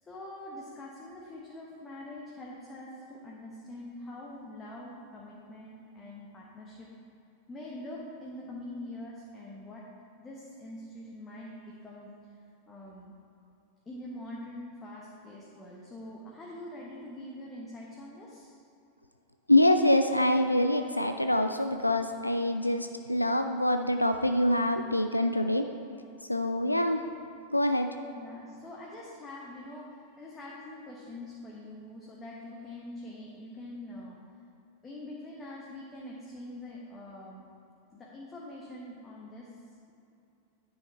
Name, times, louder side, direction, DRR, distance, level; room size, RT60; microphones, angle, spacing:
voice 1, 0.0-6.9 7.5-9.8 10.2-12.1 12.7-13.1 13.9-18.6 28.1-34.2 34.8-37.4 37.9-39.5, left 1 dB, 20° left, -4 dB, 1.2 m, -44 dB
voice 2, 19.5-25.6 26.3-27.0 27.5-27.9, left 1 dB, 85° left, 7 dB, 0.3 m, -25 dB
9.8 x 5.6 x 4.2 m, 2.7 s
figure-of-eight pair, 90°, 0 cm